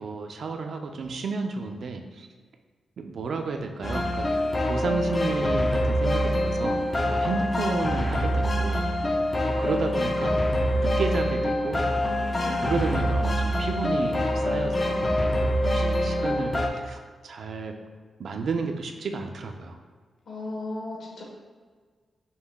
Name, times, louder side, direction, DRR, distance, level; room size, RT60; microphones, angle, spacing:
voice 1, 0.0-2.3 3.0-4.3 4.7-8.9 9.6-10.4 10.7-11.8 12.5-15.3 15.6-17.7 18.2-19.8, right 4 dB, 60° right, 4 dB, 0.4 m, -32 dB
sound 1, 3.8-16.7, left 1 dB, 25° left, 0.4 m, -25 dB
voice 2, 12.3-13.0 20.3-21.2, left 2 dB, 60° left, -3 dB, 1.1 m, -36 dB
5.4 x 2.3 x 3.5 m, 1.5 s
wide cardioid pair, 155°, 0 cm